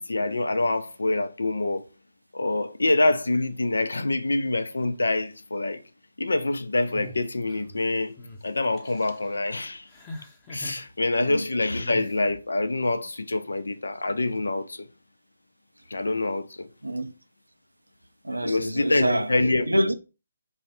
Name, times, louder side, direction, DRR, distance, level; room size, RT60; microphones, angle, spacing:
voice 1, 0.0-1.8 2.3-5.8 6.2-8.2 8.4-9.9 10.5-14.9 15.9-16.7 18.4-19.8, left 2 dB, 70° left, 0.4 m, -26 dB
sound 1, 6.9-7.8 8.2-8.4 8.8-9.3 9.9-10.8 11.8-12.1, left 2 dB, 15° left, 0.8 m, -41 dB
voice 2, 18.2-19.3 19.7-19.9, right 1 dB, 85° right, 0.4 m, -26 dB
3.1 x 2.1 x 4.1 m
figure-of-eight pair, 145°, 0 cm